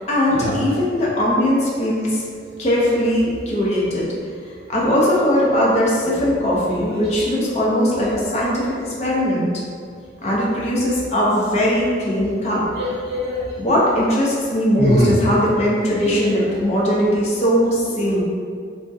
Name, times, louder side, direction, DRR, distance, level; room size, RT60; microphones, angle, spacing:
voice 1, 0.0-2.2 2.6-4.1 4.7-9.5 10.2-12.6 13.6-18.2, equal, 35° left, -5 dB, 0.6 m, -19 dB
voice 2, 12.7-13.5 14.8-15.2 16.0-16.3, left 1 dB, 55° right, -6 dB, 0.8 m, -23 dB
2.6 x 2.1 x 3.5 m, 2.2 s
head